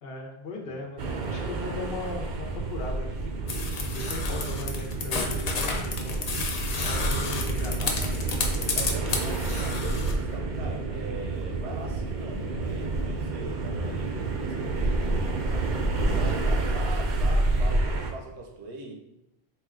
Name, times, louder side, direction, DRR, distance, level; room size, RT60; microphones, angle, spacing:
voice 1, 0.0-3.3 3.9-8.1, left 2 dB, 65° left, 1 dB, 0.9 m, -38 dB
sound 1, 1.0-18.1, right 2 dB, 55° right, 0.5 m, -29 dB
sound 2, 3.5-10.1, left 4 dB, 50° left, 0.5 m, -31 dB
voice 2, 8.8-15.8 16.1-18.9, right 3 dB, 90° right, 2 dB, 1.0 m, -41 dB
4.2 x 2.2 x 3.6 m, 0.89 s
omnidirectional pair, 1.1 m